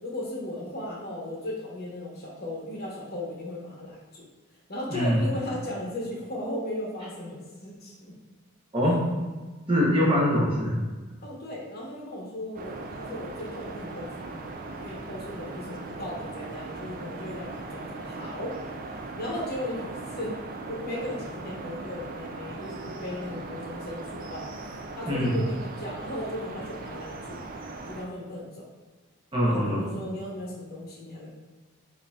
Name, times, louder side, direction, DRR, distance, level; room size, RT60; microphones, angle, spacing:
voice 1, 0.0-4.3 4.7-8.1 8.8-9.0 11.2-18.6 19.0-20.4 20.7-24.5 25.0-27.4 27.9-28.7 29.4-31.3, left 1 dB, 45° left, -4 dB, 0.9 m, -36 dB
voice 2, 9.7-10.8 25.1-25.3 29.3-29.8, equal, 25° right, -4 dB, 0.7 m, -23 dB
sound 1, 12.5-28.1, right 3 dB, 40° right, 0.3 m, -39 dB
5.0 x 2.7 x 2.3 m, 1.3 s
head